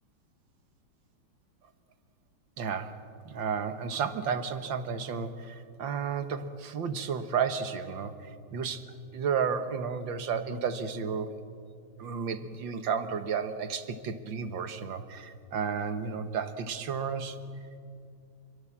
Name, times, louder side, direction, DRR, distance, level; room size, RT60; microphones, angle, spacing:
voice 1, 2.6-3.0 3.3-8.8 9.1-11.4 12.0-17.4, right 6 dB, 70° right, 9 dB, 2.0 m, -32 dB
28.5 x 22.5 x 7.4 m, 2.3 s
omnidirectional pair, 2.2 m